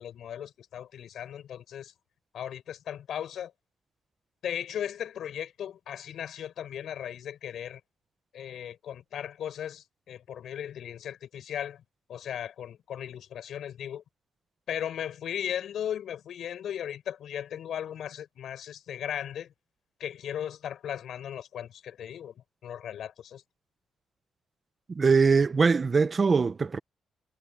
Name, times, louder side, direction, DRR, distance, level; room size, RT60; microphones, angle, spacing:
voice 1, 0.0-1.9 2.3-3.5 4.4-7.8 8.3-11.8 12.1-14.0 14.7-19.5 20.0-23.4, left 9 dB, 70° left, 7.9 m, -37 dB
voice 2, 24.9-26.8, right 4 dB, 35° right, 1.1 m, -22 dB
cardioid pair, 95°, 0 cm